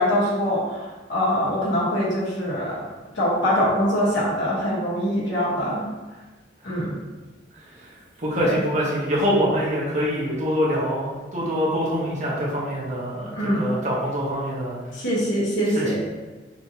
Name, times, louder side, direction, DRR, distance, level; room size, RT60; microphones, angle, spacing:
voice 1, 0.0-2.9 3.1-5.8 6.6-7.0 8.4-8.5 13.3-13.7 14.9-15.9, equal, 80° left, -7 dB, 1.3 m, -23 dB
voice 2, 7.5-14.8 15.7-15.9, equal, 40° right, -6 dB, 1.2 m, -25 dB
5.4 x 2.9 x 2.8 m, 1.2 s
head